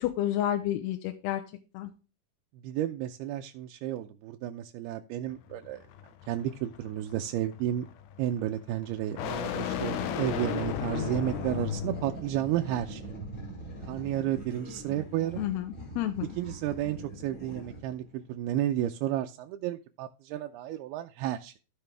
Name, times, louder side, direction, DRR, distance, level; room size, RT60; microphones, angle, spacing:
voice 1, 0.2-1.4 1.7-1.9 15.4-16.3, left 12 dB, 90° left, 6 dB, 2.8 m, -30 dB
voice 2, 2.6-5.8 6.3-7.9 8.2-13.0 13.9-15.4 16.2-21.5, right 12 dB, 80° right, 4 dB, 2.5 m, -32 dB
sound 1, 5.3-12.3, left 10 dB, 75° left, 2.0 m, -36 dB
sound 2, 9.6-18.1, right 1 dB, 20° left, 2.9 m, -41 dB
14.0 x 5.2 x 3.3 m, 0.32 s
omnidirectional pair, 4.6 m